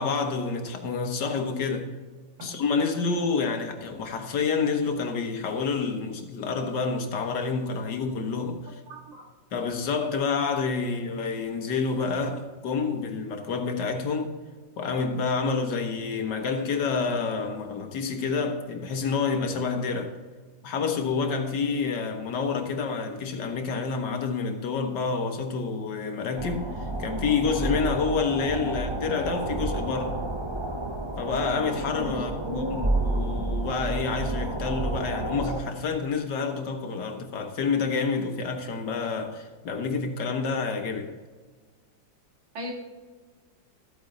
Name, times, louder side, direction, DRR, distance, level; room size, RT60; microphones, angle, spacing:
voice 1, 0.0-1.9 2.4-8.8 9.5-14.4 14.8-20.1 20.6-30.2 31.2-41.1, left 5 dB, 65° left, 1.8 m, -28 dB
voice 2, 8.9-9.2 32.1-32.9 42.5-42.7, left 1 dB, 85° right, 3.1 m, -35 dB
sound 1, 26.4-35.6, right 2 dB, 25° right, 0.6 m, -30 dB
13.5 x 8.7 x 3.9 m
omnidirectional pair, 2.0 m